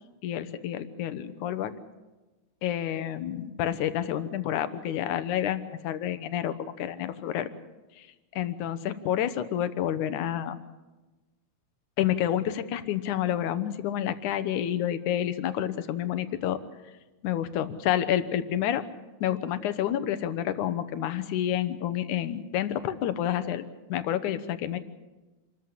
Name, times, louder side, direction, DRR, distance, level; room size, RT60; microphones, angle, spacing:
voice 1, 0.2-1.7 2.6-7.5 8.3-10.6 12.0-16.6 17.2-18.8 19.2-24.8, left 11 dB, 90° left, 12 dB, 2.5 m, -29 dB
27.0 x 14.0 x 8.6 m, 1.2 s
omnidirectional pair, 3.4 m